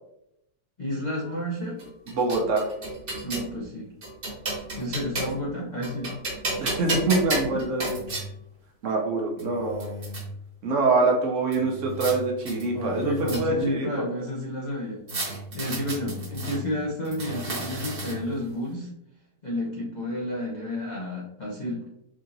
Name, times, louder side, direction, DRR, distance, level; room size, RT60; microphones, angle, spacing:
voice 1, 0.8-1.8 3.2-3.9 4.8-6.1 12.7-15.0 15.5-18.9 19.4-21.8, equal, 50° left, -5 dB, 0.5 m, -31 dB
sound 1, 1.8-3.5 4.0-5.5 5.8-8.3 9.0-9.1 9.4-10.2 11.5-12.1 12.4-13.7 15.1-16.6 17.0-18.4, right 2 dB, 40° right, 1.0 m, -33 dB
voice 2, 2.1-2.7 6.6-8.0 8.8-9.9 10.6-14.0, right 3 dB, 70° right, 1 dB, 0.7 m, -25 dB
4.9 x 2.8 x 2.6 m, 0.82 s
omnidirectional pair, 1.9 m